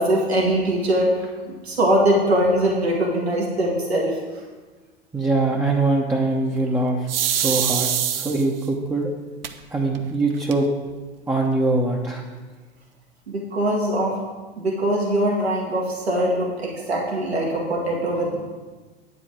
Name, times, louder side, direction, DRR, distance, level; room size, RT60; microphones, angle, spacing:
voice 1, 0.0-4.4 13.3-14.1 14.6-18.4, right 1 dB, 80° right, -3 dB, 2.3 m, -22 dB
voice 2, 5.1-9.1 9.7-10.7 11.3-12.2, right 2 dB, 10° right, -2 dB, 1.0 m, -23 dB
sound 1, 7.1-8.7 9.4-9.5 9.9-10.0 10.3-10.9, right 10 dB, 65° right, 0.7 m, -24 dB
9.5 x 5.0 x 7.7 m, 1.3 s
figure-of-eight pair, 85°, 31 cm